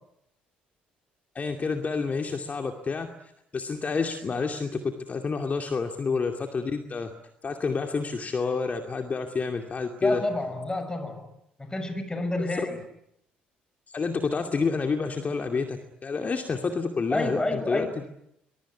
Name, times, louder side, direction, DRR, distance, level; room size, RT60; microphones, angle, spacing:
voice 1, 1.3-3.1 3.5-4.8 5.1-7.1 7.4-10.2 12.4-12.5 13.9-18.1, left 4 dB, 35° left, 4 dB, 2.5 m, -29 dB
voice 2, 10.0-11.3 11.6-12.8 17.1-18.1, left 2 dB, 15° left, 9 dB, 6.5 m, -29 dB
23.5 x 22.5 x 9.7 m, 0.79 s
figure-of-eight pair, 50°, 5 cm